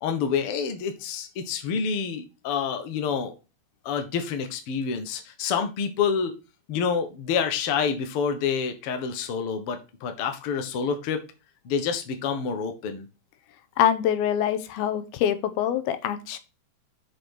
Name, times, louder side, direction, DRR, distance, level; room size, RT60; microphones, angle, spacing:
voice 1, 0.0-3.3 3.8-6.3 6.7-11.2 11.6-13.0, left 6 dB, 65° left, 6 dB, 1.4 m, -28 dB
voice 2, 13.8-16.4, left 10 dB, 85° left, 11 dB, 2.7 m, -24 dB
6.6 x 6.2 x 4.5 m, 0.29 s
omnidirectional pair, 4.4 m